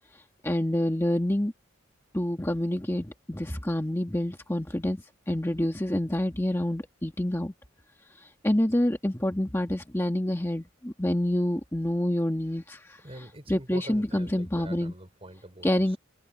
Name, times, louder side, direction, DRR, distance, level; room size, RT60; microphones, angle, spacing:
voice 1, 0.4-1.5 2.1-7.5 8.2-13.0 13.5-14.9 15.6-16.0, left 1 dB, 10° left, 1.4 m, -27 dB
voice 2, 13.0-15.7, right 1 dB, 30° right, 4.6 m, -44 dB
head